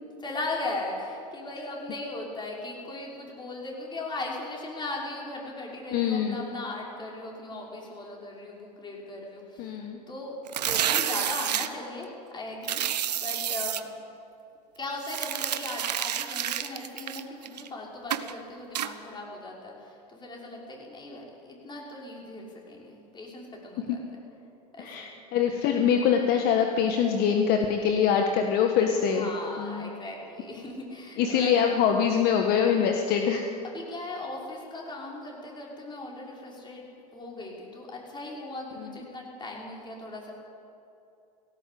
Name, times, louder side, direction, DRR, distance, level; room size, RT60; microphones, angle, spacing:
voice 1, 0.2-9.8 10.1-10.4 10.6-13.9 14.8-24.0 24.7-25.1 29.0-31.7 33.6-36.9 37.1-40.4, left 2 dB, 20° left, -2 dB, 5.9 m, -38 dB
voice 2, 5.9-6.5 9.6-10.0 24.8-29.3 29.6-29.9 31.2-33.5, left 7 dB, 50° left, 4 dB, 1.7 m, -24 dB
sound 1, 10.5-11.7 12.6-13.8 15.0-17.7 18.1-18.3 18.8-18.9, right 10 dB, 85° right, 1.0 m, -29 dB
18.0 x 17.5 x 8.6 m, 2.7 s
hypercardioid pair, 95°, 21 cm